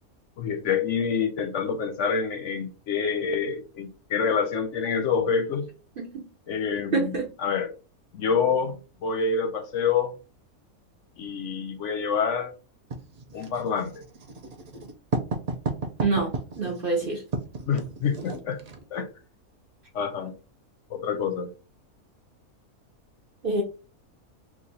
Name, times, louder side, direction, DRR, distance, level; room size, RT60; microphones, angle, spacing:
voice 1, 0.4-5.7 6.5-7.1 7.4-7.7 8.1-10.1 11.2-12.5 13.3-14.0 17.7-18.6 18.9-19.1 19.9-20.3 20.9-21.5, left 6 dB, 65° left, 0.8 m, -27 dB
voice 2, 6.0-6.3 6.9-7.3 16.0-17.2 23.4-23.6, right 3 dB, 50° right, 0.8 m, -26 dB
Writing, 12.9-18.8, right 3 dB, 70° right, 0.3 m, -33 dB
3.0 x 2.4 x 3.9 m
omnidirectional pair, 1.5 m